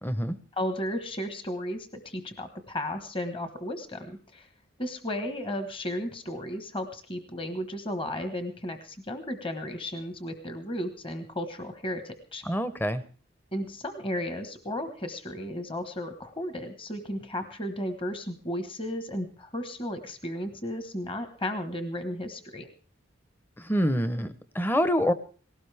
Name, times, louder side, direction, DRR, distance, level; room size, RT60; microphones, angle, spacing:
voice 1, 0.0-0.4 12.5-13.0 23.6-25.1, equal, 10° left, 13 dB, 0.7 m, -26 dB
voice 2, 0.6-4.5 4.8-12.4 13.5-22.7, left 1 dB, 25° left, 8 dB, 1.2 m, -34 dB
19.0 x 17.5 x 3.4 m, 0.39 s
head